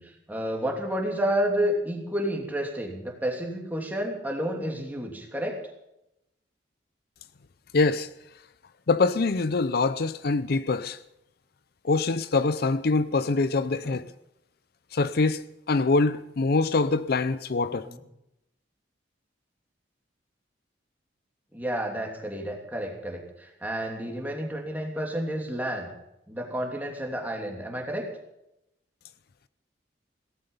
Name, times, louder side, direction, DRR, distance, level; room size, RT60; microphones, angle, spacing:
voice 1, 0.0-5.6 13.8-14.0 17.7-18.0 21.5-25.9 26.3-28.1, equal, 10° right, 2.9 m, -30 dB
voice 2, 7.7-8.1 8.9-11.0 11.8-14.1 14.9-17.9, left 3 dB, 55° left, 0.5 m, -24 dB
17.5 x 14.5 x 5.5 m
head